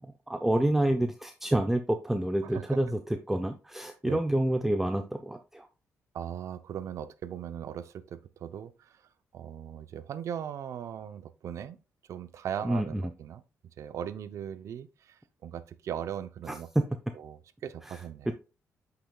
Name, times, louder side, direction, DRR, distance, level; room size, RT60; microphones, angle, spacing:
voice 1, 0.0-5.7 12.6-13.0 16.5-16.8 17.9-18.0, right 1 dB, 5° right, 0.6 m, -28 dB
voice 2, 6.1-9.0 9.3-11.8 12.1-13.4 13.8-16.7 17.1-18.3, right 9 dB, 65° right, 0.6 m, -39 dB
8.5 x 6.0 x 2.3 m
cardioid pair, 125°, 6 cm